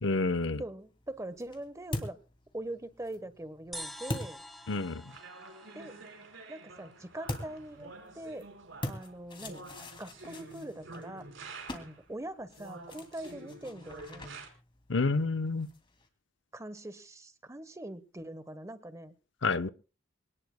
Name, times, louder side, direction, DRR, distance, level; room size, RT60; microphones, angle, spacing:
voice 1, 0.0-0.6 4.7-5.0 14.9-15.7 19.4-19.7, left 3 dB, 70° left, 11 dB, 0.8 m, -29 dB
voice 2, 0.6-2.2 2.5-4.4 5.7-6.0 6.5-8.5 8.9-9.6 10.0-11.3 11.7-14.2 16.5-19.1, right 1 dB, 15° right, 13 dB, 1.0 m, -42 dB
sound 1, 0.8-5.2 7.2-16.1, left 1 dB, 25° left, 2.6 m, -44 dB
sound 2, 3.7-7.2, left 1 dB, ahead, 2.1 m, -47 dB
sound 3, 5.1-12.0 12.6-14.5, right 2 dB, 80° right, 4.7 m, -48 dB
25.5 x 18.5 x 2.2 m, 0.36 s
head